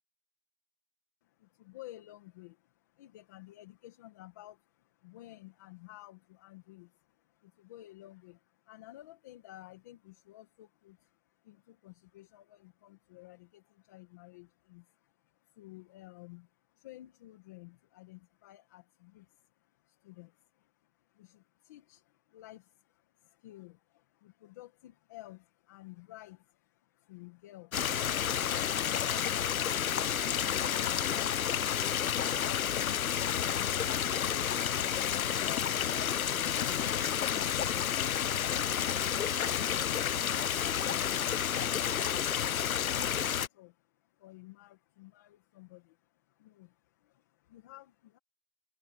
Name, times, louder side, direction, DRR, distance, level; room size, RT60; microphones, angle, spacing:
voice 1, 1.2-48.2, left 16 dB, 10° left, 1.4 m, -53 dB
Stream, 27.7-43.5, left 9 dB, 70° left, 0.7 m, -30 dB
hypercardioid pair, 170°, 44 cm